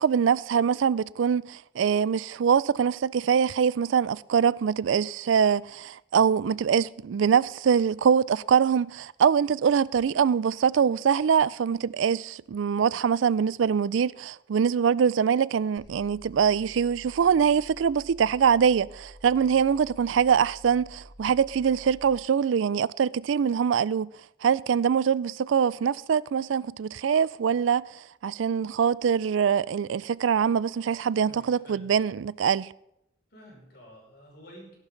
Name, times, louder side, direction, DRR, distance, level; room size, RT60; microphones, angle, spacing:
voice 1, 0.0-24.1 24.4-27.8 28.2-32.7, right 7 dB, 85° right, 0.4 m, -23 dB
sound 1, 15.8-22.2, equal, 20° left, 5.0 m, -50 dB
voice 2, 31.1-31.9 33.3-34.8, equal, 55° left, 5.7 m, -50 dB
18.0 x 11.5 x 3.9 m
head